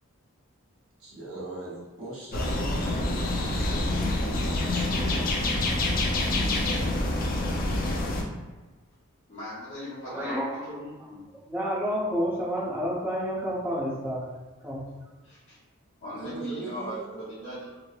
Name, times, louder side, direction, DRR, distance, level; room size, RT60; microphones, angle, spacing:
voice 1, 1.0-3.9 4.2-5.6 16.1-17.1, right 2 dB, 75° right, -7 dB, 1.0 m, -40 dB
sound 1, 2.3-8.2, left 2 dB, 40° left, 0.3 m, -27 dB
voice 2, 9.3-11.2 15.2-15.6 16.0-17.8, equal, 60° left, -11 dB, 0.7 m, -38 dB
voice 3, 10.0-10.6 11.0-11.1 11.5-14.3 14.6-14.9, equal, 10° right, -7 dB, 0.6 m, -29 dB
3.0 x 2.0 x 2.3 m, 1.3 s
head